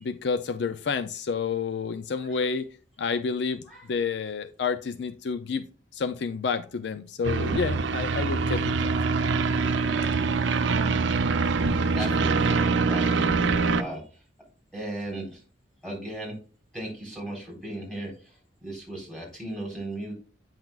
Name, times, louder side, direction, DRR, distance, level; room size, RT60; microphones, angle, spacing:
voice 1, 0.0-2.7 3.0-3.6 3.9-5.7 5.9-8.9, left 5 dB, 65° left, 0.4 m, -29 dB
sound 1, 7.2-13.8, right 4 dB, 80° right, 0.6 m, -24 dB
voice 2, 11.9-14.2 14.7-15.4 15.8-16.4 16.7-20.1, right 1 dB, 5° left, 3.6 m, -37 dB
8.9 x 5.8 x 2.4 m
head